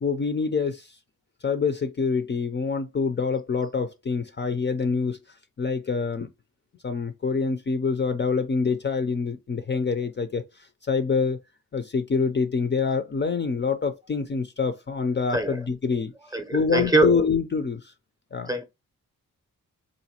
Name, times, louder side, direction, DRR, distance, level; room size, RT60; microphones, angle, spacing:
voice 1, 0.0-0.9 1.4-5.2 5.6-6.3 6.8-10.5 10.8-11.4 11.7-16.1 16.5-17.9 18.3-18.5, left 5 dB, 30° left, 0.5 m, -26 dB
voice 2, 15.3-15.6 16.3-17.2 18.5-18.6, right 2 dB, 10° right, 0.7 m, -23 dB
4.0 x 2.6 x 2.8 m
cardioid pair, 75°, 34 cm